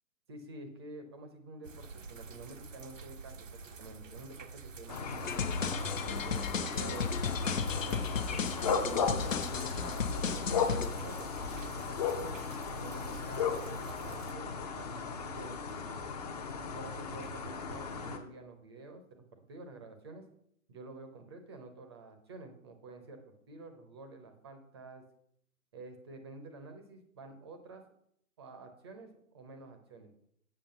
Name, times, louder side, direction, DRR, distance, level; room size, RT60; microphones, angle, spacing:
voice 1, 0.3-8.7 9.2-12.4 12.8-16.1 16.7-20.2 20.7-25.0 25.7-27.8 28.4-30.1, right 3 dB, 20° right, 6 dB, 0.7 m, -50 dB
sound 1, 1.6-14.3, right 4 dB, 65° right, 0.8 m, -48 dB
sound 2, 4.9-18.2, left 5 dB, 30° left, 0.8 m, -36 dB
sound 3, 5.2-10.9, left 5 dB, 65° left, 0.9 m, -34 dB
7.7 x 6.5 x 5.4 m, 0.71 s
figure-of-eight pair, 140°, 42 cm